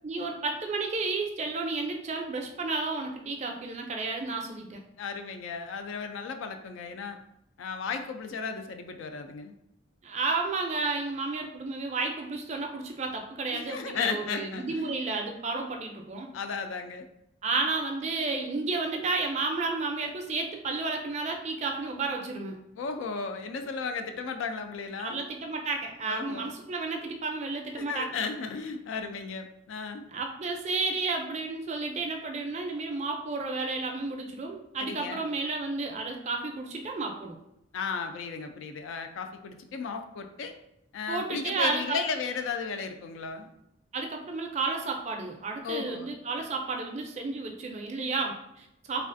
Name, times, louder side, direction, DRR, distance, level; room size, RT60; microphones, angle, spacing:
voice 1, 0.0-4.8 10.0-16.3 17.4-22.6 25.0-28.1 30.1-37.4 41.1-42.0 43.9-49.1, right 3 dB, 35° right, 2 dB, 0.3 m, -32 dB
voice 2, 5.0-7.2 7.6-9.5 13.5-15.0 16.3-17.1 21.9-22.1 22.8-25.3 26.1-26.5 27.8-30.1 34.8-35.3 37.7-40.5 40.9-43.5 45.6-46.1, left 5 dB, 75° left, 6 dB, 0.3 m, -35 dB
3.2 x 2.4 x 2.5 m, 0.82 s
head